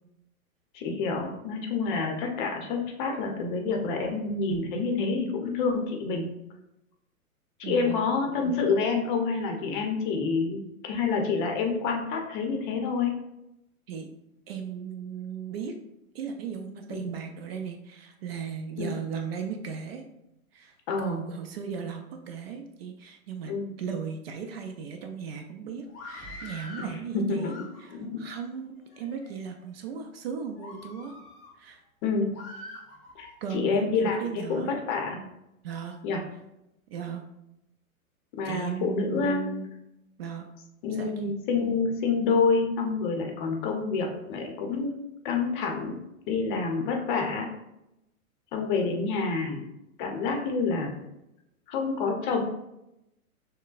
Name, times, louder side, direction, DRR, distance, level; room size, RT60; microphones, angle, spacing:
voice 1, 0.7-6.3 7.6-13.1 17.0-17.1 18.8-18.9 20.9-21.2 23.5-23.7 27.1-27.6 27.9-28.2 32.0-32.3 33.2-35.2 36.0-36.2 38.4-39.4 40.8-44.9 45.2-45.9 46.3-47.5 48.5-49.6 50.0-50.9 51.7-52.4, left 4 dB, 35° left, 2 dB, 0.7 m, -28 dB
voice 2, 7.6-8.1 13.9-14.1 14.5-15.7 16.1-20.0 20.5-27.5 27.8-31.2 31.6-31.8 33.4-34.8 35.6-36.0 36.9-37.2 38.4-39.7 40.2-40.5 40.9-41.1 48.8-49.2, right 7 dB, 45° right, 5 dB, 0.5 m, -37 dB
Screaming, 25.9-27.0 27.3-28.1 28.8-29.3 29.9-30.0 30.6-31.5 32.3-33.4, left 2 dB, 15° left, 0.3 m, -44 dB
6.3 x 2.1 x 2.4 m, 0.87 s
hypercardioid pair, 120°, 43 cm